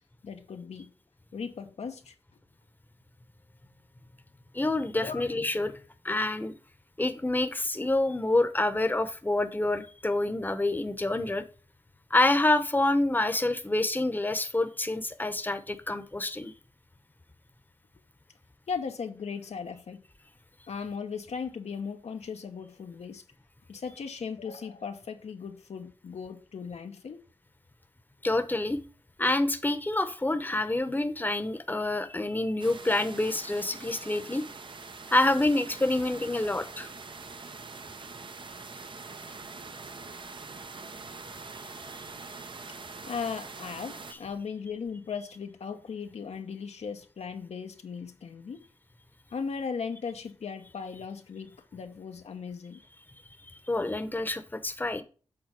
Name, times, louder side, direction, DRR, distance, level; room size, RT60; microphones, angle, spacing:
voice 1, 0.2-0.9 1.3-2.1 4.9-5.2 18.7-20.0 20.7-23.2 23.7-27.2 43.1-48.6 49.3-52.8, left 6 dB, 80° left, 1.0 m, -37 dB
voice 2, 4.5-5.7 6.0-6.5 7.0-11.4 12.1-16.5 28.2-28.8 29.2-34.5 35.1-36.9 53.7-55.0, left 2 dB, 15° left, 1.0 m, -27 dB
sound 1, 32.6-44.1, right 4 dB, 50° right, 0.8 m, -44 dB
7.7 x 3.9 x 5.9 m
cardioid pair, 70°, 11 cm